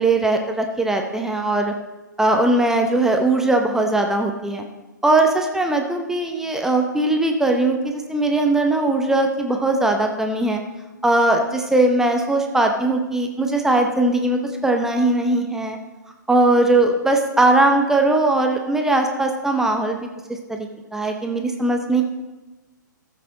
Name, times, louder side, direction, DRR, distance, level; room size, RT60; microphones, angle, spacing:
voice 1, 0.0-1.7 2.2-4.6 5.0-10.6 11.0-15.8 16.3-20.6 20.9-22.0, right 2 dB, 5° right, 3 dB, 0.7 m, -19 dB
14.5 x 7.6 x 3.9 m, 1.1 s
figure-of-eight pair, 120°, 10 cm